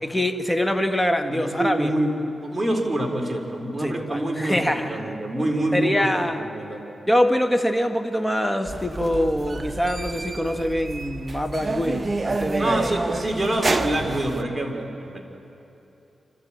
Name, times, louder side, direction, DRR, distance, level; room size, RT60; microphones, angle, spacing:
voice 1, 0.0-1.9 3.8-5.1 5.7-6.4 7.1-12.9, equal, 5° left, 5 dB, 1.5 m, -24 dB
voice 2, 1.3-6.8 12.6-15.2, right 1 dB, 20° right, 1 dB, 3.8 m, -26 dB
sound 1, 8.7-14.4, right 3 dB, 35° right, 0.9 m, -29 dB
27.5 x 13.5 x 8.7 m, 2.9 s
cardioid pair, 70°, 0 cm